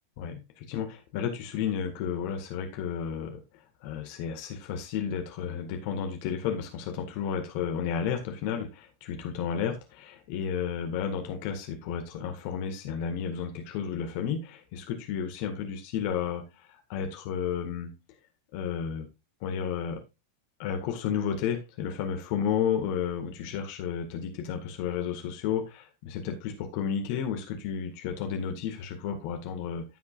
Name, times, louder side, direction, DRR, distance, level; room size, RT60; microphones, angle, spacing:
voice 1, 0.2-3.4 3.8-17.9 18.5-19.1 19.4-20.0 20.6-29.8, left 7 dB, 45° left, 4 dB, 1.8 m, -32 dB
15.0 x 5.8 x 2.5 m, 0.27 s
figure-of-eight pair, 90°, 0 cm